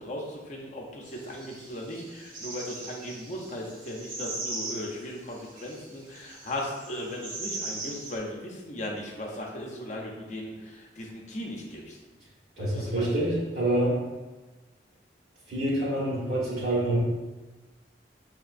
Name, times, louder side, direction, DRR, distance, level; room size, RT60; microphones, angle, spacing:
voice 1, 0.0-12.0 12.6-13.2, left 1 dB, 45° left, -1 dB, 0.7 m, -37 dB
sound 1, 1.0-8.2, right 2 dB, 50° right, 0.9 m, -40 dB
voice 2, 12.6-14.0 15.5-17.0, right 1 dB, 75° right, -9 dB, 1.4 m, -26 dB
5.6 x 2.9 x 2.5 m, 1.2 s
head